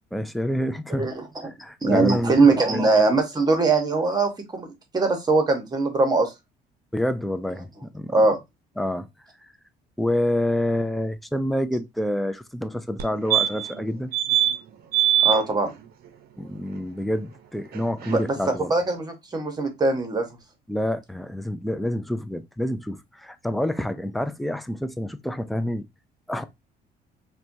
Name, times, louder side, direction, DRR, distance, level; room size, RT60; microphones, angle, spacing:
voice 1, 0.1-1.1 1.6-2.3 2.7-2.8 6.9-8.2 8.8-9.1 10.0-14.1 16.4-18.7 20.7-25.8 26.3-26.4, left 1 dB, ahead, 0.3 m, -27 dB
voice 2, 1.0-1.5 1.8-6.3 8.1-8.4 15.2-15.7 18.1-18.4 18.7-20.3, right 3 dB, 25° right, 1.0 m, -21 dB
sound 1, 13.0-13.1 13.3-13.8 14.1-14.5 14.9-15.4 17.8-17.9 18.0-18.1, right 11 dB, 65° right, 0.6 m, -21 dB
4.2 x 2.2 x 2.6 m
cardioid pair, 110°, 17 cm